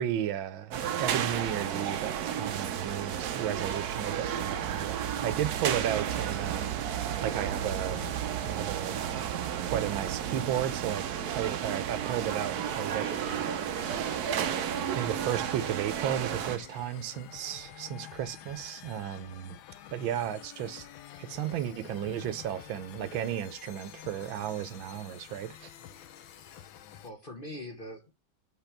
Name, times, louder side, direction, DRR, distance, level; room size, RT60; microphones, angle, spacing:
voice 1, 0.0-6.8 7.2-8.0 8.4-9.0 9.7-11.1 11.3-13.5 14.9-19.6 19.9-20.9 21.2-25.7, right 10 dB, 85° right, 1.5 m, -34 dB
sound 1, 0.7-16.6, right 9 dB, 65° right, 1.1 m, -32 dB
Fire, 7.3-9.7, left 11 dB, 75° left, 1.1 m, -48 dB
sound 2, 12.7-27.1, left 11 dB, 90° left, 1.5 m, -49 dB
voice 2, 27.0-28.1, left 1 dB, 30° left, 1.1 m, -44 dB
7.9 x 3.5 x 5.8 m
omnidirectional pair, 2.1 m